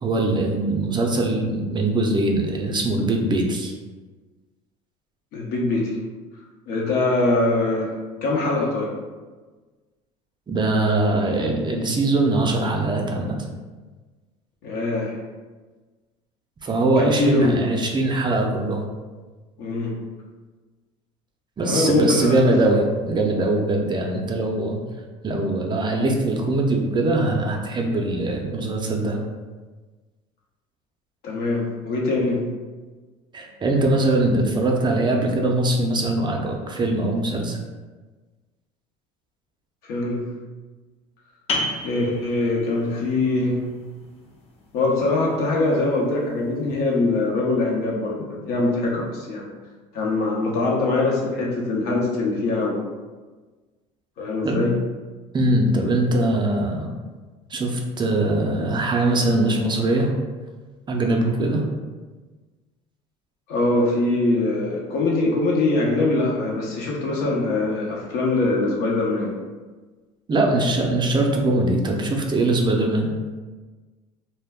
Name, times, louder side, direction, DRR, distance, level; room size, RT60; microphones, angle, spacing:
voice 1, 0.0-3.7 10.5-13.3 16.6-18.8 21.6-24.8 25.2-29.2 33.3-37.6 54.4-54.7 55.3-56.9 57.5-60.1 60.9-61.6 70.3-73.1, right 2 dB, 25° right, 1 dB, 0.5 m, -22 dB
voice 2, 5.3-6.0 6.7-7.9 8.2-8.9 14.6-15.2 17.0-17.6 19.6-19.9 21.6-22.5 31.2-32.4 39.9-40.2 41.8-43.6 44.7-49.5 49.9-52.8 54.2-54.7 63.5-69.3, left 2 dB, 70° left, -2 dB, 0.7 m, -22 dB
sound 1, 41.5-46.9, left 1 dB, 35° left, 0.5 m, -34 dB
2.2 x 2.1 x 3.4 m, 1.3 s
supercardioid pair, 85°, 17 cm